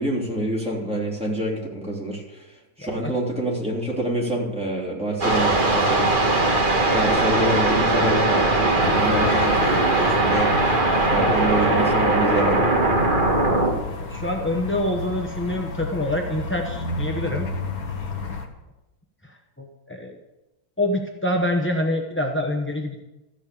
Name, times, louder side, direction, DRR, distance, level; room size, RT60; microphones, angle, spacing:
voice 1, 0.0-2.5 2.8-6.1 6.9-10.5 11.1-12.7, right 1 dB, 5° right, -4 dB, 3.1 m, -27 dB
voice 2, 2.8-3.1 14.0-17.5 18.3-18.4 19.2-20.2 20.8-23.0, left 1 dB, 15° left, 2 dB, 0.4 m, -26 dB
sound 1, 5.2-13.7, right 2 dB, 30° right, 1.7 m, -20 dB
sound 2, 8.8-18.5, left 3 dB, 55° left, 1.7 m, -32 dB
14.0 x 6.3 x 8.5 m, 1.0 s
omnidirectional pair, 1.9 m